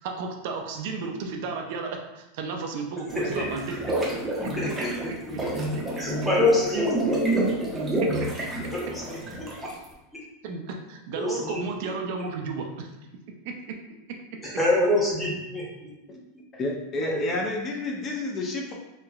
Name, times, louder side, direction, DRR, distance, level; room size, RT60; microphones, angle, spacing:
voice 1, 0.0-4.5 8.0-8.4 10.4-12.9 13.4-13.5, right 4 dB, 65° right, 2 dB, 0.4 m, -33 dB
sound 1, 3.1-9.8, right 1 dB, 20° right, 0.6 m, -28 dB
voice 2, 4.6-4.9 6.0-7.2 8.7-9.2 11.2-11.6 14.4-15.9 17.0-17.2, left 2 dB, 10° left, -5 dB, 0.9 m, -26 dB
voice 3, 16.5-18.7, left 2 dB, 30° left, 0 dB, 0.4 m, -30 dB
3.0 x 2.1 x 2.3 m, 0.99 s
supercardioid pair, 125°, 0 cm